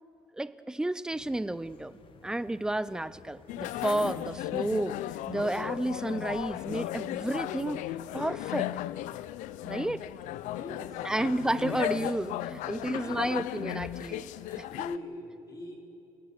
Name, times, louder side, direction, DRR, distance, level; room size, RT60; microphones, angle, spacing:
voice 1, 0.3-2.0 2.2-5.0 5.3-7.8 8.1-8.7 9.6-10.1 11.0-14.6, right 1 dB, 5° right, 15 dB, 0.5 m, -31 dB
sound 1, 1.1-6.8, left 5 dB, 45° left, 1.5 m, -57 dB
sound 2, 3.5-15.0, left 14 dB, 85° left, 0.6 m, -36 dB
voice 2, 10.5-11.4 12.5-12.6 13.0-13.4 14.0-15.8, left 2 dB, 30° left, 1 dB, 4.7 m, -43 dB
29.0 x 18.5 x 7.0 m, 2.9 s
cardioid pair, 135°, 12 cm